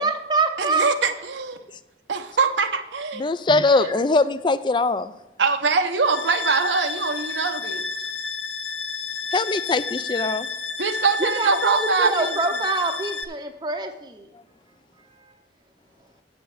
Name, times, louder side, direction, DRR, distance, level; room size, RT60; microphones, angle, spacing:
voice 1, 0.0-0.9 11.2-14.3 15.0-15.3, right 3 dB, 25° right, 0.7 m, -25 dB
voice 2, 0.6-1.6 2.1-3.3 3.8-3.9 5.4-7.8 10.8-12.3, right 4 dB, 80° right, 0.8 m, -23 dB
voice 3, 3.2-5.1 9.3-10.5, left 3 dB, 25° left, 0.4 m, -21 dB
sound 1, 6.0-13.2, left 4 dB, 70° left, 0.9 m, -30 dB
7.5 x 7.4 x 7.1 m
head